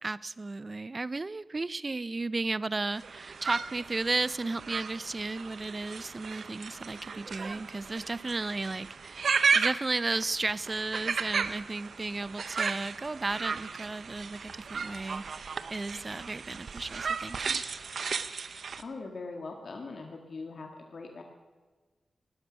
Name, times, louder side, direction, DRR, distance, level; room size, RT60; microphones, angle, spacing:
voice 1, 0.0-17.6, right 3 dB, 35° right, 19 dB, 0.4 m, -34 dB
sound 1, 2.9-18.8, right 5 dB, 70° right, 0.7 m, -34 dB
voice 2, 18.8-21.2, left 3 dB, 65° left, 3 dB, 1.7 m, -41 dB
18.5 x 12.5 x 6.3 m, 1.3 s
cardioid pair, 75°, 0 cm